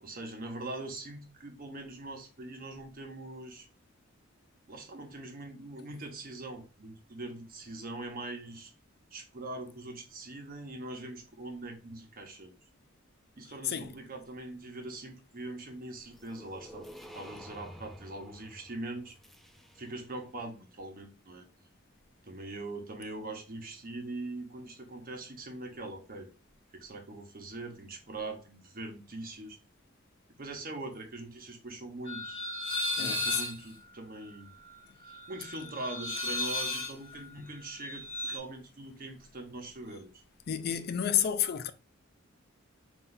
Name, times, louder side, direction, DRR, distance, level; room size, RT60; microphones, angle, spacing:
voice 1, 0.0-3.7 4.7-8.7 9.1-12.5 13.4-16.9 17.1-19.2 19.7-21.4 22.2-26.3 26.7-29.6 30.4-32.4 33.0-34.5 35.0-40.2, right 2 dB, 45° right, 1.0 m, -42 dB
sound 1, 16.1-20.2, equal, ahead, 0.5 m, -50 dB
sound 2, 32.1-38.4, left 2 dB, 25° left, 1.3 m, -35 dB
voice 2, 33.0-33.4 40.5-41.7, left 9 dB, 50° left, 0.4 m, -30 dB
5.8 x 2.7 x 2.6 m
head